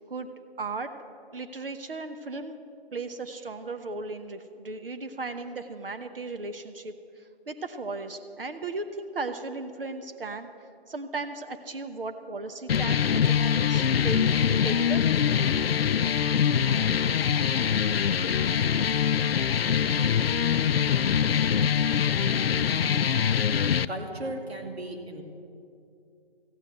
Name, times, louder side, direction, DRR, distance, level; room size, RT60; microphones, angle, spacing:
voice 1, 0.6-0.9 1.3-2.6 2.9-10.5 10.9-15.1, right 3 dB, 60° right, 8 dB, 1.0 m, -36 dB
sound 1, 12.7-23.8, left 8 dB, 70° left, 0.5 m, -24 dB
voice 2, 23.9-25.2, right 1 dB, 85° right, 2 dB, 2.4 m, -35 dB
14.5 x 9.6 x 8.0 m, 2.6 s
figure-of-eight pair, 155°, 31 cm